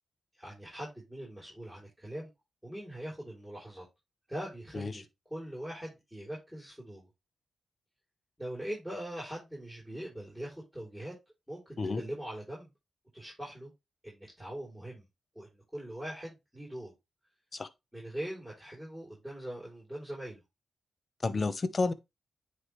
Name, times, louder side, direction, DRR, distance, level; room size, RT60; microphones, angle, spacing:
voice 1, 0.3-2.3 2.6-3.9 4.3-7.1 8.4-11.1 11.5-12.7 13.1-13.7 14.0-15.0 15.3-16.9 17.9-20.4, right 1 dB, ahead, 4.0 m, -42 dB
voice 2, 21.2-21.9, left 3 dB, 45° left, 0.8 m, -30 dB
9.6 x 3.5 x 3.1 m
cardioid pair, 65°, 0 cm